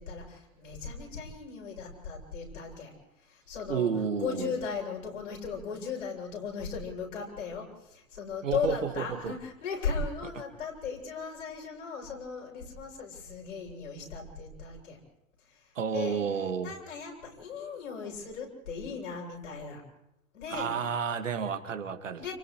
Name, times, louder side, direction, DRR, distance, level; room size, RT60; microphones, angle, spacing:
voice 1, 0.0-3.9 4.2-15.0 15.4-19.8 20.3-20.8 22.2-22.3, left 5 dB, 65° left, -2 dB, 7.9 m, -37 dB
voice 2, 3.7-4.5 8.4-9.4 15.8-16.7 20.5-22.3, right 7 dB, 70° right, 6 dB, 2.1 m, -31 dB
30.0 x 30.0 x 3.3 m, 0.83 s
figure-of-eight pair, 95°, 40 cm